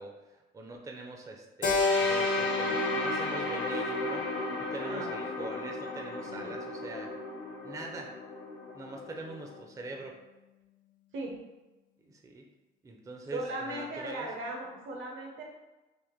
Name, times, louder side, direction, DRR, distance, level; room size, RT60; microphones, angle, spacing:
voice 1, 0.0-7.1 7.6-8.1 8.7-10.2 12.0-12.4 12.8-14.5, right 2 dB, 15° right, 2 dB, 0.4 m, -43 dB
Keyboard (musical), 1.6-6.0, left 3 dB, 40° left, 0.6 m, -32 dB
sound 1, 1.8-9.6, left 2 dB, 70° left, 0.9 m, -35 dB
voice 2, 4.8-5.1 6.3-6.6 11.1-11.4 13.3-15.4, right 1 dB, 80° right, 0 dB, 0.7 m, -38 dB
3.4 x 2.1 x 3.0 m, 1.1 s
cardioid pair, 90°, 20 cm